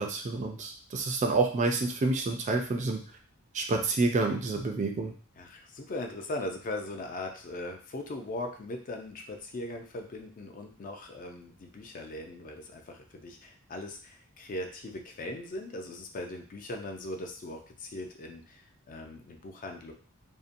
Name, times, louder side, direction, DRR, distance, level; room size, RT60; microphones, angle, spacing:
voice 1, 0.0-3.0 3.5-5.1, right 3 dB, 35° right, 3 dB, 0.3 m, -28 dB
voice 2, 5.4-19.9, left 2 dB, 40° left, 3 dB, 0.4 m, -39 dB
2.7 x 2.1 x 2.5 m, 0.42 s
head